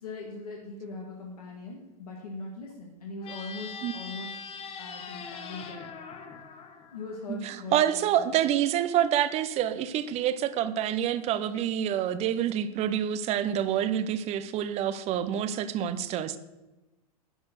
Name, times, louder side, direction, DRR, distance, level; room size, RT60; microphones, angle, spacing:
voice 1, 0.0-4.3 4.8-5.9 6.9-8.4, left 2 dB, 75° left, 1.8 m, -40 dB
sound 1, 3.2-7.6, left 5 dB, 30° left, 1.1 m, -42 dB
voice 2, 7.3-16.4, right 10 dB, 35° right, 0.7 m, -27 dB
11.0 x 4.4 x 6.5 m
hypercardioid pair, 100°, 19 cm